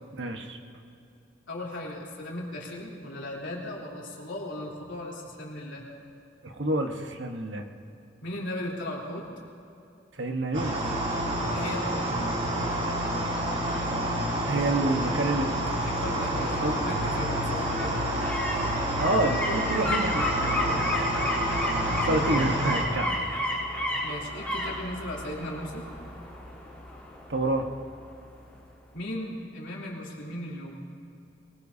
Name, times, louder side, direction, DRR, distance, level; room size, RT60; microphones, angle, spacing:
voice 1, 0.1-0.6 6.4-7.7 10.2-10.8 14.5-15.5 16.6-16.7 19.0-21.1 21.9-23.3 27.3-27.7, right 2 dB, 75° right, 4 dB, 1.2 m, -28 dB
voice 2, 1.5-5.8 8.2-9.3 11.5-12.2 15.8-18.1 20.6-21.0 24.0-25.9 28.9-30.8, left 1 dB, 80° left, -3 dB, 3.3 m, -37 dB
sound 1, 10.5-22.8, right 1 dB, 35° right, 2.9 m, -29 dB
sound 2, 15.3-28.2 28.5-28.6, left 1 dB, 10° left, 3.4 m, -33 dB
22.5 x 21.5 x 2.8 m, 2.7 s
head